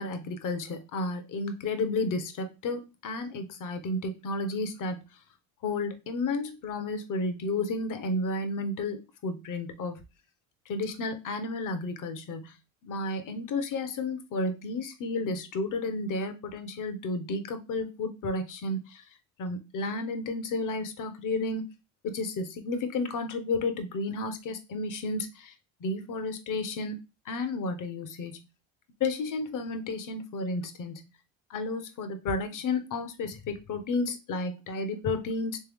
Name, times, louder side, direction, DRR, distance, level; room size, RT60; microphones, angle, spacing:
voice 1, 0.0-5.0 5.6-10.0 10.7-12.5 12.8-19.0 19.4-21.6 22.0-25.5 25.8-27.0 27.3-28.4 29.0-31.1 31.5-35.6, left 2 dB, 50° left, 8 dB, 0.9 m, -32 dB
3.4 x 3.3 x 3.5 m, 0.27 s
cardioid pair, 100°, 40 cm